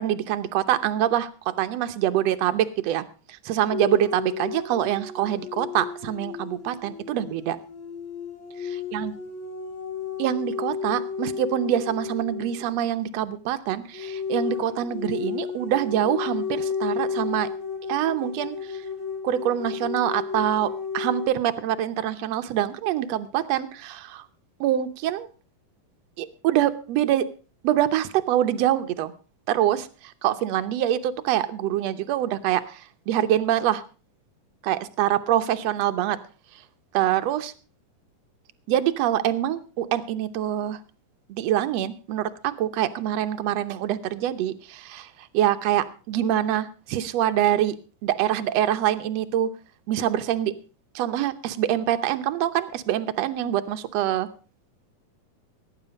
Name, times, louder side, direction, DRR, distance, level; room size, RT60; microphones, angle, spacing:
voice 1, 0.0-7.6 8.6-9.1 10.2-17.5 17.9-18.8 19.2-24.2 24.6-25.3 26.2-27.3 27.6-29.1 29.5-33.8 34.6-36.2 36.9-37.5 38.7-40.8 41.3-45.1 45.3-47.7 48.0-49.5 49.9-50.5 50.9-54.3, right 11 dB, 70° right, 10 dB, 1.7 m, -25 dB
sound 1, 3.7-12.8 13.9-21.3, left 6 dB, 45° left, 2.2 m, -32 dB
17.5 x 9.9 x 5.2 m, 0.36 s
omnidirectional pair, 3.9 m